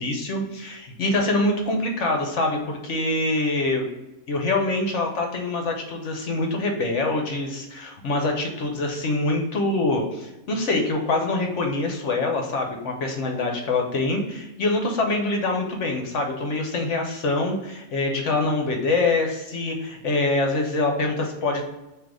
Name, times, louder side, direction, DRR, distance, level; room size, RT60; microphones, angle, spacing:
voice 1, 0.0-3.8 4.3-21.6, left 2 dB, 60° left, 2 dB, 1.1 m, -25 dB
3.8 x 2.9 x 4.7 m, 0.98 s
omnidirectional pair, 1.5 m